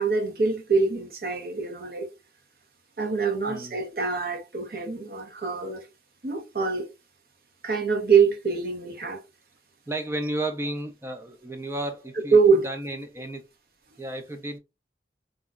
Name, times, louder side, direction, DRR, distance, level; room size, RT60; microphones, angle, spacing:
voice 1, 0.0-2.1 3.0-5.9 6.2-6.9 7.6-9.2 12.3-12.7, right 5 dB, 55° right, 0.6 m, -24 dB
voice 2, 9.9-12.4 12.6-13.4 14.0-14.6, right 1 dB, 15° right, 0.4 m, -32 dB
3.7 x 2.0 x 2.2 m
head